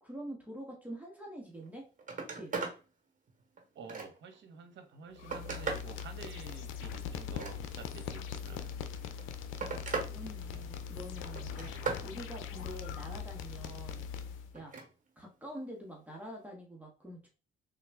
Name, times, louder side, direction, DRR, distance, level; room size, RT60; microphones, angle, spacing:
voice 1, 0.0-1.9 2.2-2.5 10.1-14.1 14.5-14.8 15.2-17.3, right 1 dB, 10° right, -2 dB, 1.1 m, -46 dB
Telephone, 1.6-1.7 2.0-2.8 3.3-4.4 4.9-5.9 7.2-8.0 9.0-10.1 10.5-10.9 11.4-12.1 14.5-14.9 16.3-16.4, right 4 dB, 40° right, 1.2 m, -39 dB
voice 2, 3.7-8.7, right 4 dB, 65° right, 6 dB, 0.9 m, -50 dB
sound 1, 5.2-14.6, left 7 dB, 90° left, 0.4 m, -41 dB
3.6 x 2.3 x 3.4 m, 0.33 s
cardioid pair, 90°, 20 cm